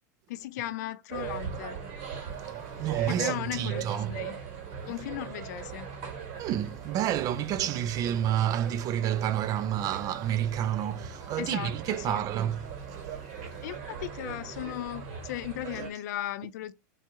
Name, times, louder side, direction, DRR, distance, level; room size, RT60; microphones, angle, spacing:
voice 1, 0.3-1.8 3.1-4.4 4.9-5.9 11.4-12.2 13.6-16.7, left 14 dB, 70° left, 0.5 m, -37 dB
sound 1, 1.1-15.9, right 8 dB, 60° right, 2.7 m, -39 dB
voice 2, 2.4-4.1 6.4-12.7, right 11 dB, 40° right, 0.5 m, -29 dB
3.9 x 2.8 x 4.7 m
supercardioid pair, 125°, 10 cm